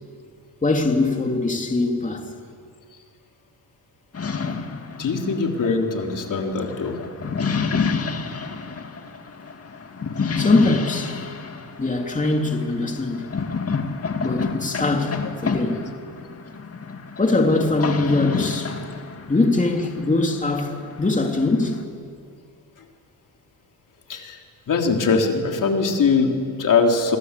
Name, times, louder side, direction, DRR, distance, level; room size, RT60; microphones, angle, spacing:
voice 1, 0.6-2.3 10.4-11.2 11.8-13.3 14.2-15.9 17.2-18.7 19.3-21.8, left 2 dB, 20° left, 3.0 m, -22 dB
sound 1, 4.1-21.8, left 5 dB, 40° left, 2.4 m, -29 dB
voice 2, 5.0-7.0 24.1-24.4 24.7-27.2, left 4 dB, 55° left, 3.6 m, -21 dB
28.0 x 25.0 x 8.4 m
cardioid pair, 95°, 38 cm